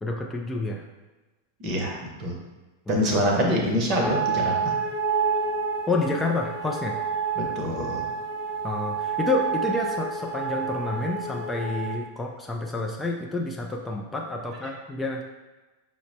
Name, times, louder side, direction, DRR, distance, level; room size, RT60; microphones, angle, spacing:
voice 1, 0.0-0.8 2.9-3.0 5.9-7.0 8.6-15.2, left 2 dB, 10° left, 0 dB, 0.3 m, -29 dB
voice 2, 1.6-2.4 2.9-4.7 7.4-8.0, equal, 40° right, 0 dB, 0.7 m, -25 dB
sound 1, 4.0-12.0, right 5 dB, 30° left, 0.8 m, -29 dB
5.7 x 2.0 x 2.6 m, 1.2 s
figure-of-eight pair, 90°, 0 cm